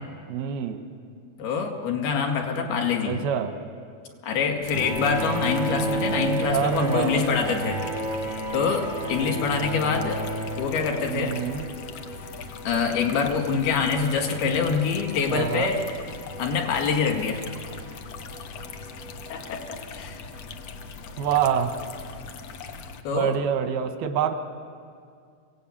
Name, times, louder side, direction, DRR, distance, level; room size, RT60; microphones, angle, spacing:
voice 1, 0.3-0.8 3.0-3.6 6.5-7.8 11.1-11.7 15.3-15.7 21.2-21.8 23.1-24.4, right 8 dB, 90° right, 8 dB, 3.1 m, -26 dB
voice 2, 1.4-3.1 4.2-7.8 8.5-10.2 10.6-11.4 12.7-15.8 16.4-17.4 19.3-20.2 23.0-23.4, left 5 dB, 80° left, 2 dB, 4.1 m, -25 dB
sound 1, 4.6-23.0, left 4 dB, 65° left, 1.6 m, -40 dB
Bowed string instrument, 4.7-11.5, right 2 dB, 35° right, 0.4 m, -31 dB
Wind instrument woodwind instrument, 6.7-21.4, equal, 15° left, 0.7 m, -46 dB
26.5 x 17.0 x 8.6 m, 2.3 s
omnidirectional pair, 4.3 m